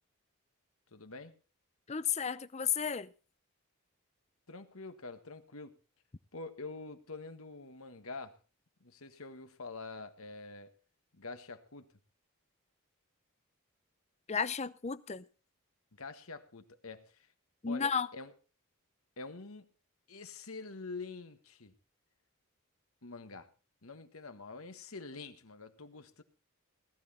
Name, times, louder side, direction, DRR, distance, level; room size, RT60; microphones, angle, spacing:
voice 1, 0.9-1.3 4.5-5.7 6.3-8.4 8.8-10.7 11.1-11.9 15.9-17.3 17.7-18.3 19.2-19.7 20.1-21.7 23.0-23.5 23.8-26.2, left 3 dB, 75° left, 1.6 m, -46 dB
voice 2, 1.9-3.1 14.3-15.2 17.6-18.1, left 6 dB, 30° left, 0.6 m, -33 dB
18.0 x 11.0 x 4.2 m
head